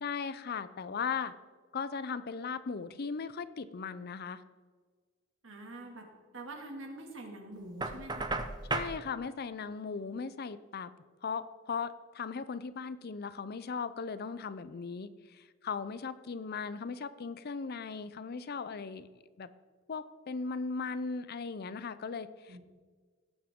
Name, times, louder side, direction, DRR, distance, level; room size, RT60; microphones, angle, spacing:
voice 1, 0.0-1.3 1.7-4.4 8.7-10.9 11.2-19.1 19.4-19.5 19.9-22.6, left 5 dB, 50° left, 14 dB, 0.5 m, -38 dB
voice 2, 5.4-6.1 6.3-8.3 22.4-22.6, right 2 dB, 70° right, 1 dB, 2.2 m, -45 dB
Knock, 7.8-9.0, right 3 dB, 20° right, 0.7 m, -34 dB
17.5 x 7.2 x 3.7 m, 1.5 s
head